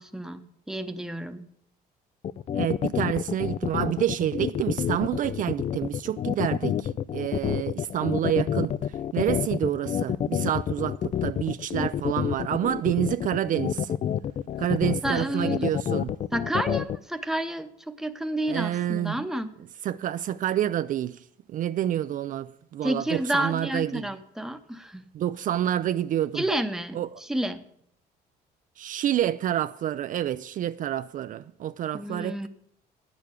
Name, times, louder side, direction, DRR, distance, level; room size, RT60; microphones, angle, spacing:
voice 1, 0.0-1.5 15.0-15.7 16.3-19.5 22.8-25.1 26.3-27.6 31.9-32.5, right 1 dB, 5° right, 0.9 m, -30 dB
sound 1, 2.2-17.0, left 9 dB, 40° left, 0.4 m, -28 dB
voice 2, 2.5-8.7 9.1-13.9 14.6-16.1 18.5-19.3 19.8-21.2 21.5-24.1 25.1-26.4 26.9-27.1 28.8-32.5, right 11 dB, 50° right, 0.4 m, -28 dB
10.0 x 6.8 x 8.2 m
cardioid pair, 110°, 17 cm